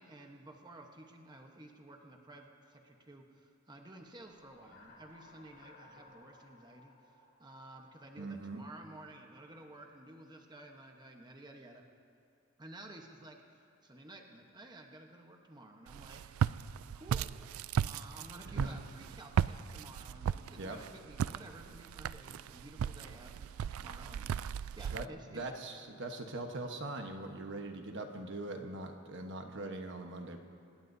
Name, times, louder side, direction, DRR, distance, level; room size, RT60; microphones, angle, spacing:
voice 1, 0.0-11.8 12.6-16.2 16.9-17.3 17.8-25.5, right 1 dB, 20° right, 2 dB, 1.1 m, -53 dB
sound 1, 3.9-8.6, left 3 dB, 55° left, 3.2 m, -60 dB
voice 2, 8.2-8.6 18.5-18.8 20.6-20.8 24.9-30.4, right 2 dB, 60° right, 4 dB, 1.2 m, -41 dB
Walk footsteps, 15.9-25.1, right 8 dB, 90° right, 0.3 m, -36 dB
26.5 x 20.0 x 2.7 m, 2.4 s
head